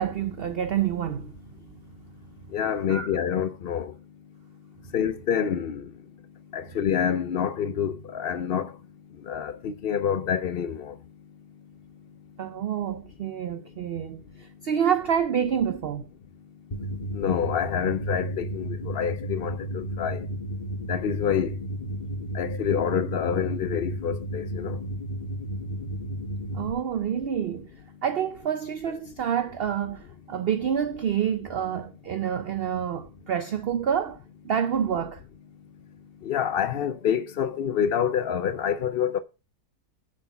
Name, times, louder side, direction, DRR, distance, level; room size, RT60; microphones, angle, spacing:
voice 1, 0.0-1.4 2.8-3.1 12.4-16.1 26.5-27.7 28.0-34.2 34.4-35.2, right 8 dB, 75° right, 0.5 m, -28 dB
voice 2, 2.5-3.9 4.9-5.8 6.5-8.7 9.3-10.9 17.1-20.2 20.9-21.5 22.3-24.8 36.2-39.2, left 8 dB, 65° left, 0.5 m, -27 dB
sound 1, 16.7-26.7, right 1 dB, 30° left, 1.1 m, -33 dB
7.8 x 6.3 x 5.7 m
omnidirectional pair, 1.7 m